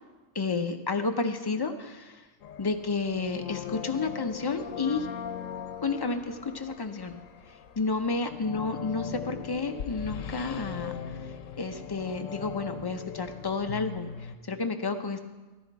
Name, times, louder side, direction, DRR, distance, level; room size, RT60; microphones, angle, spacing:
voice 1, 0.3-2.2 2.6-5.1 5.8-7.2 7.8-15.2, left 4 dB, 40° left, 6 dB, 0.3 m, -31 dB
sound 1, 2.4-14.4, left 8 dB, 85° left, 1.0 m, -40 dB
13.0 x 10.5 x 4.6 m, 1.2 s
omnidirectional pair, 1.3 m